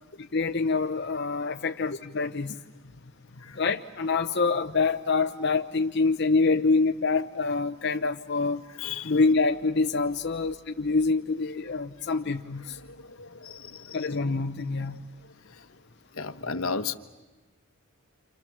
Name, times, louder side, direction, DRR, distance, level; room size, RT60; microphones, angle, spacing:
voice 1, 0.3-2.5 3.6-8.6 9.0-12.8 13.9-15.0, left 4 dB, 55° left, 4 dB, 0.9 m, -26 dB
voice 2, 8.8-9.1 13.2-14.2 16.2-16.9, left 5 dB, 80° left, 9 dB, 1.3 m, -33 dB
29.0 x 27.5 x 7.4 m, 1.2 s
head